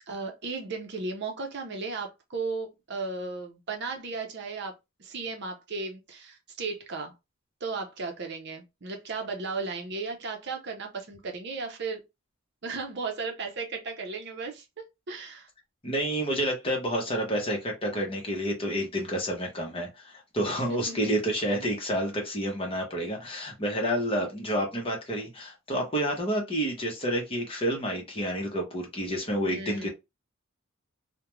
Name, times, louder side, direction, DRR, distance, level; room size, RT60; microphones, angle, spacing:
voice 1, 0.1-4.7 5.0-7.1 7.6-12.0 12.6-15.5 20.7-21.0 21.6-21.7 29.5-29.9, right 4 dB, 55° right, 0.6 m, -35 dB
voice 2, 15.8-29.9, equal, 25° left, 0.8 m, -29 dB
2.4 x 2.2 x 3.0 m
head